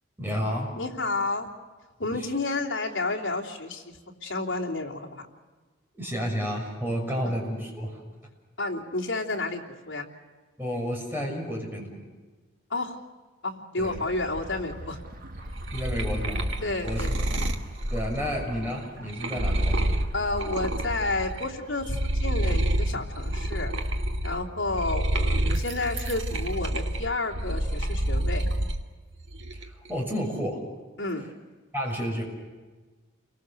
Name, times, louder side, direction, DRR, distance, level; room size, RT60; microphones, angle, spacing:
voice 1, 0.2-0.7 5.9-8.0 10.6-12.1 13.8-14.1 15.7-16.5 16.8-17.4 17.9-19.8 29.5-30.6 31.2-31.3 31.7-32.2, equal, 10° right, 0 dB, 6.4 m, -31 dB
voice 2, 0.7-1.5 2.0-5.2 7.2-7.4 8.6-10.1 12.7-13.0 13.4-15.0 16.6-17.2 20.1-23.7 24.2-28.5 31.0-31.2, left 2 dB, 70° left, -2 dB, 3.1 m, -31 dB
sound 1, 13.8-22.4, right 1 dB, 45° right, 1.7 m, -44 dB
sound 2, 15.2-21.5 21.8-28.8 29.2-29.9, right 1 dB, 65° right, 1.9 m, -28 dB
30.0 x 23.5 x 6.8 m, 1.3 s
head